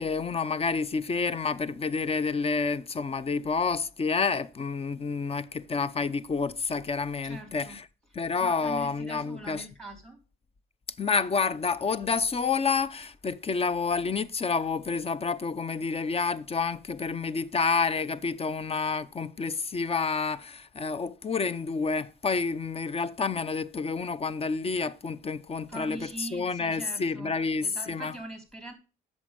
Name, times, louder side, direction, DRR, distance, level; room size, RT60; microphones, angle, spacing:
voice 1, 0.0-7.9 8.1-9.7 11.0-28.2, left 4 dB, 30° left, 0.6 m, -29 dB
voice 2, 7.2-7.8 8.4-10.2 25.7-27.3 27.6-28.7, right 2 dB, 5° left, 3.1 m, -42 dB
8.4 x 6.4 x 5.1 m
cardioid pair, 90°, 20 cm